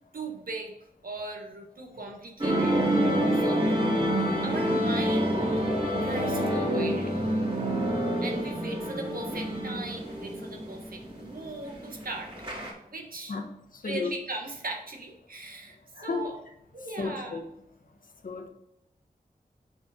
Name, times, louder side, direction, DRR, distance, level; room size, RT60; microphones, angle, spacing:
voice 1, 0.1-0.8 1.0-2.7 3.3-3.7 4.4-5.5 6.0-7.1 8.0-12.3 12.9-13.4 13.8-16.3 16.7-17.4, right 2 dB, 70° right, 1 dB, 1.5 m, -38 dB
sound 1, 2.4-12.7, right 1 dB, 35° right, 2.7 m, -27 dB
voice 2, 13.8-14.1 16.0-16.3 17.0-17.4 18.2-18.5, left 4 dB, 65° left, 5 dB, 1.2 m, -32 dB
6.3 x 4.8 x 4.9 m, 0.79 s
wide cardioid pair, 70°, 15 cm